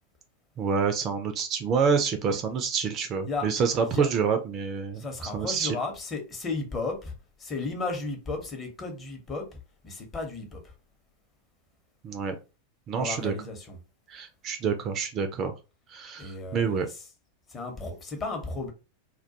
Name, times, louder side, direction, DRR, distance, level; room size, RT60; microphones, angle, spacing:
voice 1, 0.6-5.0 5.3-5.8 12.0-12.3 12.9-13.3 14.1-15.5 15.9-16.9, right 6 dB, 30° right, 0.4 m, -27 dB
voice 2, 5.0-7.1 7.4-9.5 9.8-10.6 12.9-13.8 16.2-16.8 17.5-18.7, left 3 dB, 20° left, 0.8 m, -34 dB
2.2 x 2.1 x 2.7 m
figure-of-eight pair, 90°, 0 cm